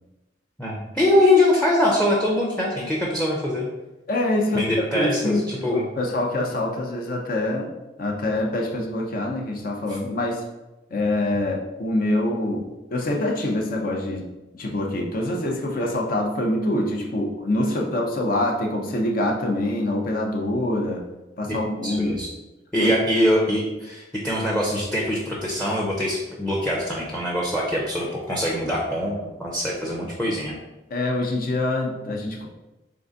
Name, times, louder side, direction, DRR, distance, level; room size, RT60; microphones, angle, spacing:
voice 1, 0.6-3.7 4.5-5.8 21.8-22.3 22.7-30.5, left 1 dB, 5° left, -3 dB, 0.6 m, -23 dB
voice 2, 4.1-7.7 8.0-10.4 10.9-14.3 14.5-21.1 21.4-22.3 22.8-22.9 30.9-32.5, left 1 dB, 55° left, 0 dB, 0.7 m, -25 dB
3.8 x 3.4 x 3.9 m, 1.0 s
head